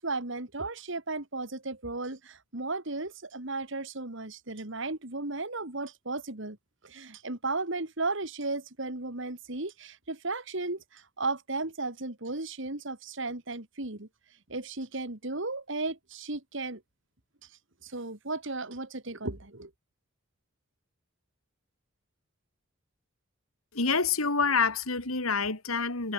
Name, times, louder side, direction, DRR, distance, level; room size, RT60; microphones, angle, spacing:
voice 1, 0.0-6.6 6.8-14.1 14.5-16.8 17.8-19.7, right 3 dB, 60° right, 2.4 m, -35 dB
voice 2, 23.7-26.1, left 4 dB, 85° left, 3.6 m, -27 dB
head